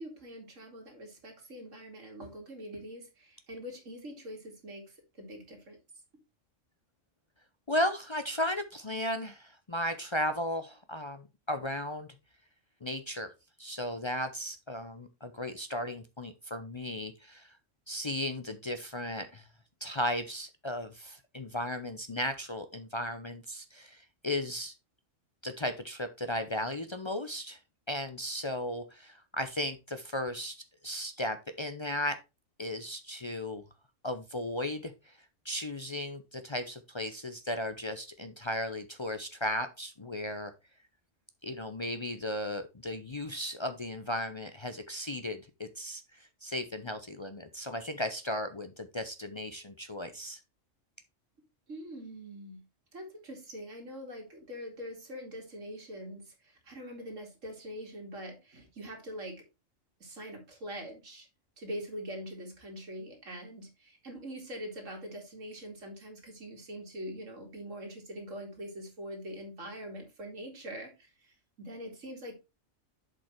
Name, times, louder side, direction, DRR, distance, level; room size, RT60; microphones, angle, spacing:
voice 1, 0.0-5.8 51.7-52.6 52.9-59.4 60.0-61.3 61.6-72.4, equal, 80° right, 2 dB, 2.8 m, -43 dB
voice 2, 7.7-12.1 12.8-13.3 13.6-17.6 17.9-19.5 19.8-24.7 25.4-27.6 27.9-32.2 32.6-33.6 34.0-35.2 35.4-40.5 41.4-50.4, left 1 dB, 35° left, 8 dB, 0.5 m, -35 dB
7.4 x 5.3 x 4.4 m, 0.26 s
omnidirectional pair, 1.3 m